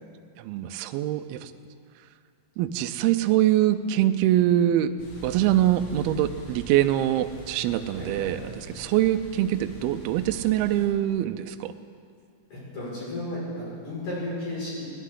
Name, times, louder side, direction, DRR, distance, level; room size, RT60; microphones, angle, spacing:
voice 1, 0.4-1.5 2.6-4.9 5.2-8.4 8.7-11.7, right 12 dB, 90° right, 9 dB, 2.2 m, -24 dB
sound 1, 5.0-10.9, right 3 dB, 65° left, 4.4 m, -43 dB
voice 2, 7.9-8.3 12.5-14.9, left 1 dB, 45° left, -7 dB, 6.6 m, -34 dB
20.5 x 17.5 x 3.8 m, 2.2 s
omnidirectional pair, 5.1 m